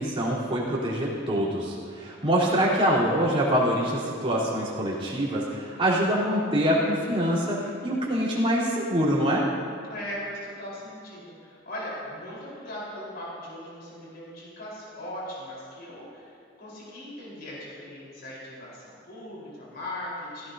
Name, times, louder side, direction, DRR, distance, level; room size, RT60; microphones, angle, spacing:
voice 1, 0.0-9.5, equal, 30° right, -7 dB, 3.5 m, -25 dB
voice 2, 2.3-2.7 9.8-20.5, left 1 dB, 55° left, -6 dB, 4.1 m, -39 dB
17.0 x 17.0 x 2.7 m, 2.4 s
head